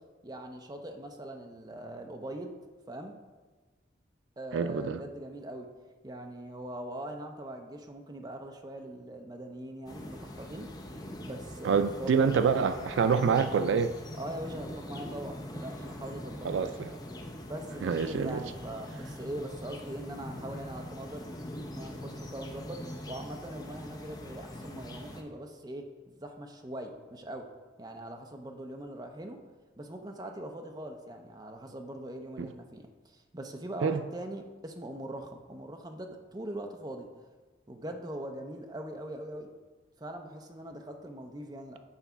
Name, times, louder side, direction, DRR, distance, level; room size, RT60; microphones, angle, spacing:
voice 1, 0.2-2.6 2.9-3.2 4.4-5.7 6.0-10.7 11.2-12.3 14.1-16.8 17.5-21.3 21.7-27.4 27.8-29.4 29.8-37.1 37.7-39.5 40.0-41.8, right 1 dB, 20° right, 3 dB, 0.6 m, -41 dB
voice 2, 4.5-5.0 11.6-14.0 16.4-16.9 17.8-18.4 32.4-32.5 33.8-34.0, right 6 dB, 85° right, 11 dB, 0.4 m, -26 dB
sound 1, 9.9-25.2, left 1 dB, 20° left, 0.7 m, -42 dB
8.2 x 4.0 x 5.7 m, 1.3 s
head